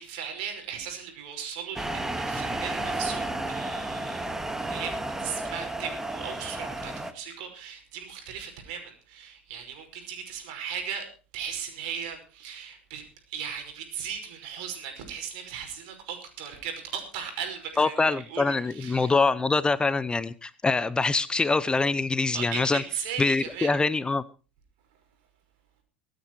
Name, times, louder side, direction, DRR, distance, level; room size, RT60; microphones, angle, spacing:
voice 1, 0.0-4.3 4.6-11.1 11.3-19.1 22.3-23.7, right 7 dB, 60° right, 5.4 m, -37 dB
sound 1, 1.8-7.1, right 2 dB, 10° right, 1.8 m, -32 dB
voice 2, 17.8-22.8 23.2-24.2, left 3 dB, 15° left, 0.7 m, -24 dB
24.0 x 9.2 x 4.6 m
figure-of-eight pair, 75°, 6 cm